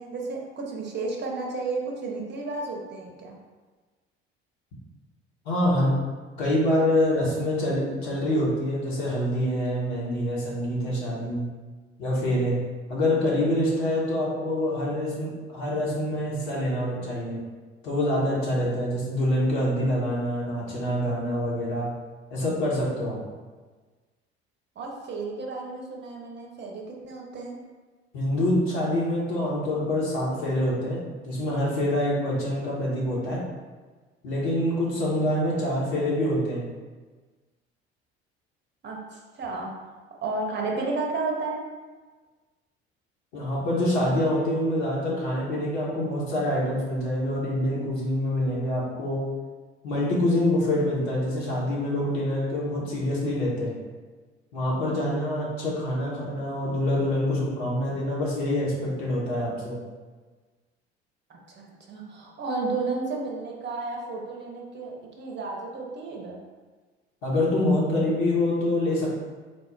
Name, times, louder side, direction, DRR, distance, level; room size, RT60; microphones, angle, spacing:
voice 1, 0.0-3.4 24.8-27.6 38.8-39.7 40.2-41.6 61.3-66.4, right 3 dB, 35° right, -1 dB, 0.7 m, -32 dB
voice 2, 5.4-6.0 6.4-11.5 12.0-17.4 17.8-21.9 22.3-23.2 28.1-33.5 34.2-36.7 43.3-49.3 49.8-53.8 54.5-59.8 67.2-69.1, left 1 dB, 65° left, -5 dB, 1.1 m, -26 dB
3.5 x 2.0 x 3.8 m, 1.3 s
figure-of-eight pair, 55°, 32 cm